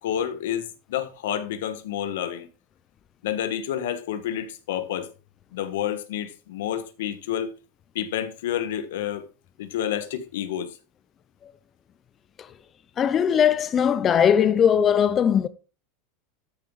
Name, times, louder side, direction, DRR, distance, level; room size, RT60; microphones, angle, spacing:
voice 1, 0.0-2.5 3.2-5.1 5.5-7.5 7.9-9.3 9.6-10.7, left 10 dB, 85° left, 1.2 m, -29 dB
voice 2, 13.0-15.5, left 8 dB, 25° left, 0.5 m, -20 dB
13.5 x 5.3 x 3.2 m
supercardioid pair, 145°, 0 cm